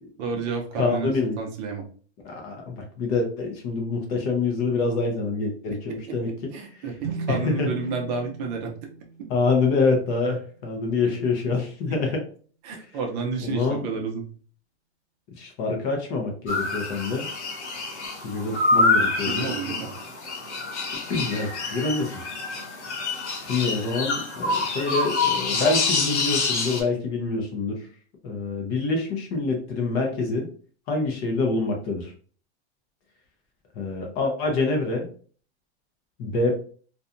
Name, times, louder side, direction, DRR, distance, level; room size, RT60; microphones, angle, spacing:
voice 1, 0.2-1.8 6.5-8.7 12.6-14.2 19.2-19.9, right 4 dB, 40° right, 2 dB, 0.6 m, -30 dB
voice 2, 0.8-1.4 2.2-6.3 7.3-7.7 9.3-12.2 13.4-13.8 15.4-17.3 18.2-19.5 21.1-22.1 23.4-27.8 28.2-30.5 30.9-32.1 33.8-35.1 36.2-36.5, left 3 dB, 30° left, 1 dB, 0.5 m, -26 dB
sound 1, 7.0-10.6, right 4 dB, 70° right, 0.8 m, -37 dB
sound 2, 16.5-26.8, left 3 dB, 90° left, 1.0 m, -26 dB
2.7 x 2.3 x 2.4 m, 0.43 s
supercardioid pair, 145°, 33 cm